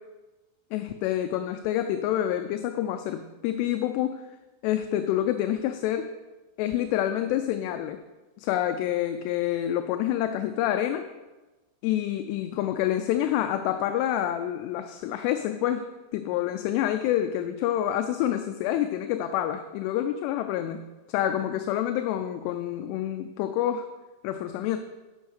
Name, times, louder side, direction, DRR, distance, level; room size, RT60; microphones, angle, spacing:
voice 1, 0.7-4.2 4.6-6.1 6.6-8.0 8.4-11.1 11.8-15.9 16.1-20.8 21.1-23.9 24.2-24.8, left 11 dB, 85° left, 7 dB, 2.7 m, -27 dB
15.0 x 5.6 x 6.5 m, 1.1 s
omnidirectional pair, 5.0 m